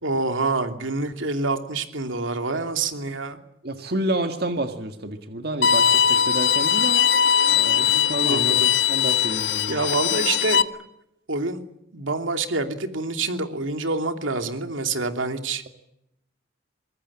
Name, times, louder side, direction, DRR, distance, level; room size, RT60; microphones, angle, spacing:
voice 1, 0.0-3.4 8.2-8.7 9.7-10.6 11.3-11.6 11.9-15.6, right 3 dB, 90° right, 6 dB, 2.9 m, -26 dB
voice 2, 3.6-7.1 7.5-8.6 8.9-9.8, right 1 dB, 55° right, 6 dB, 1.9 m, -29 dB
Bowed string instrument, 5.6-10.6, left 8 dB, 65° left, 1.1 m, -20 dB
23.5 x 22.5 x 8.8 m, 0.82 s
head